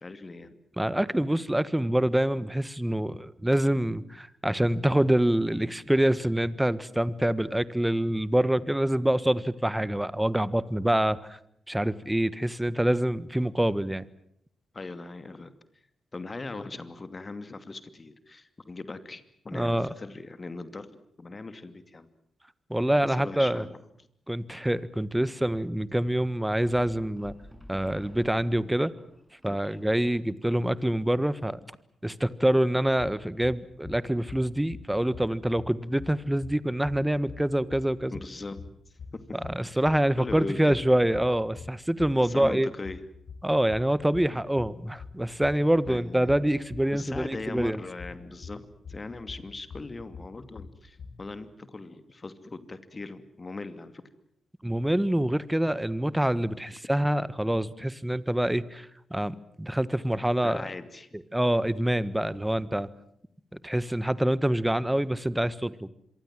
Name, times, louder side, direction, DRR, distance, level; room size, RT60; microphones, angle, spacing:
voice 1, 0.0-0.6 14.7-15.5 16.1-22.1 23.0-23.8 29.5-29.6 38.1-38.6 39.1-39.4 40.2-40.8 42.2-43.0 45.9-46.3 46.9-54.0 60.4-61.1, left 3 dB, 35° left, 11 dB, 2.6 m, -39 dB
voice 2, 0.8-11.4 11.7-14.0 19.5-19.9 22.7-23.6 24.3-27.3 27.7-28.9 29.4-31.6 32.0-38.1 39.4-42.7 43.4-47.8 54.6-60.6 61.1-62.9 63.6-65.9, right 1 dB, 10° right, 17 dB, 1.4 m, -26 dB
sound 1, 26.7-30.2, equal, 5° left, 6.9 m, -50 dB
sound 2, 33.0-51.3, left 5 dB, 60° left, 5.0 m, -46 dB
26.5 x 23.5 x 7.7 m, 0.71 s
hypercardioid pair, 40°, 0 cm